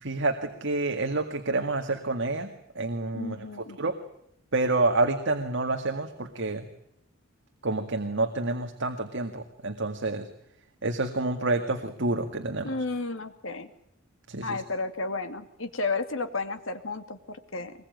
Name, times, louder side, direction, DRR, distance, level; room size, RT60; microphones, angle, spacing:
voice 1, 0.0-2.5 2.8-3.4 3.8-4.0 4.5-6.6 7.6-10.3 10.8-12.7 14.3-14.6, right 2 dB, 60° right, 5 dB, 2.0 m, -28 dB
voice 2, 3.1-3.8 12.6-13.7 14.4-17.7, left 3 dB, 70° left, 8 dB, 2.4 m, -32 dB
23.5 x 21.0 x 9.3 m, 0.76 s
head